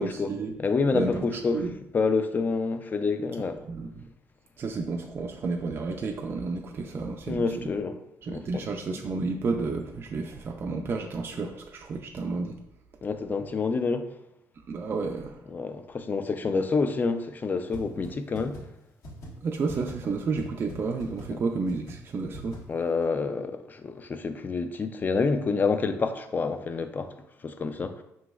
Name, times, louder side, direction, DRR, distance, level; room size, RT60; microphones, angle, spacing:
voice 1, 0.0-0.5 0.9-1.7 3.7-4.1 4.6-7.7 8.2-12.6 14.7-15.5 19.4-22.6, right 4 dB, 40° right, 0.4 m, -31 dB
voice 2, 0.6-1.7 1.9-3.6 7.3-8.0 8.3-8.6 13.0-14.1 15.5-18.6 21.3-21.4 22.7-27.1 27.4-28.0, left 4 dB, 30° left, 0.4 m, -28 dB
sound 1, 17.7-17.8 18.0-18.1 18.3-18.6 19.0-19.3 19.7-19.9 20.4-20.5 20.7-20.8 21.0-21.2 21.7-21.9 22.3-22.6, equal, 65° left, 1.3 m, -41 dB
5.0 x 3.1 x 2.3 m
cardioid pair, 105°, 6 cm